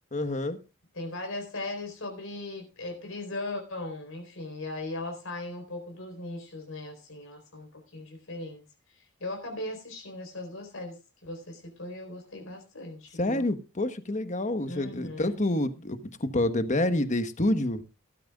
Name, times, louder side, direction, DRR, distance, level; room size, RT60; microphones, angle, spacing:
voice 1, 0.1-0.6 13.2-17.8, left 1 dB, 35° left, 1.2 m, -28 dB
voice 2, 0.9-8.6 8.9-13.5 14.7-15.4, left 2 dB, 70° left, 4.3 m, -38 dB
18.5 x 13.0 x 2.4 m
head